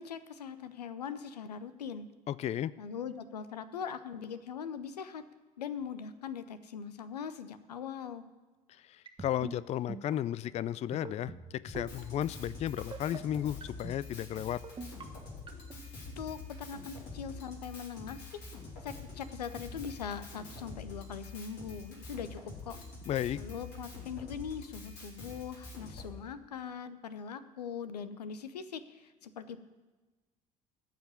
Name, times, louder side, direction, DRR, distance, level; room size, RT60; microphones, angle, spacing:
voice 1, 0.0-2.1 2.8-5.2 5.6-8.2 16.2-18.3 18.8-22.8 23.3-29.6, left 7 dB, 85° left, 13 dB, 0.6 m, -41 dB
voice 2, 2.3-2.7 8.9-14.6 23.1-23.4, left 11 dB, 35° left, 19 dB, 0.4 m, -34 dB
sound 1, 9.1-9.5 9.9-10.2 10.9-11.4 11.7-12.0 12.8-13.2 13.6-14.0 14.6-15.0 15.5-15.8, right 4 dB, 25° right, 1.4 m, -42 dB
Drum kit, 11.6-26.1, left 3 dB, 60° left, 3.3 m, -46 dB
14.0 x 5.0 x 9.1 m, 1.2 s
figure-of-eight pair, 55°, 20 cm